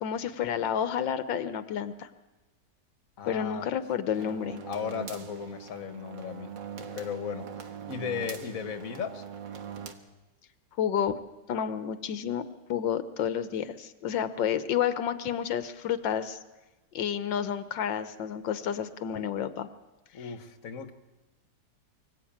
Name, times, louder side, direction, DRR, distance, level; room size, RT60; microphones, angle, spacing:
voice 1, 0.0-2.1 3.3-4.6 10.8-11.2 11.5-16.4 16.9-19.7 20.2-20.3, left 9 dB, 85° left, 10 dB, 1.7 m, -30 dB
voice 2, 3.2-3.7 4.6-9.2 20.1-20.9, left 7 dB, 50° left, 8 dB, 1.7 m, -36 dB
sound 1, 4.2-9.9, right 7 dB, 90° right, 2.1 m, -42 dB
24.0 x 16.0 x 8.8 m, 1.1 s
omnidirectional pair, 1.9 m